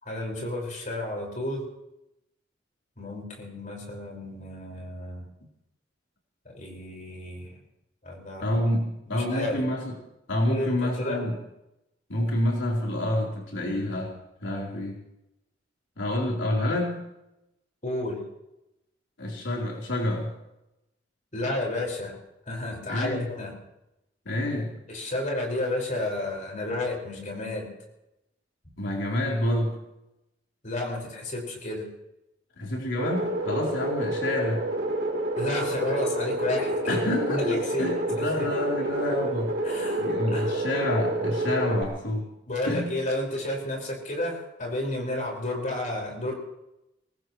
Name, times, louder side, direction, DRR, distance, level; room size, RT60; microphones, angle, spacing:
voice 1, 0.0-1.7 3.0-5.2 6.5-7.6 8.0-8.5 9.1-9.6 10.4-11.2 17.8-18.2 21.3-22.2 22.5-23.5 24.9-27.7 30.6-31.9 35.4-37.9 38.2-38.5 39.6-40.5 42.5-46.3, left 1 dB, 45° left, -1 dB, 5.2 m, -31 dB
voice 2, 8.4-10.0 10.3-11.4 12.1-14.1 14.4-15.0 16.0-17.1 19.2-20.4 22.9-23.3 24.3-24.8 28.8-29.9 32.6-34.7 36.9-42.3 42.6-42.9, left 1 dB, 90° left, -2 dB, 3.8 m, -28 dB
sound 1, 33.0-41.8, right 1 dB, 60° right, 3.3 m, -28 dB
23.5 x 19.5 x 3.1 m, 0.89 s
head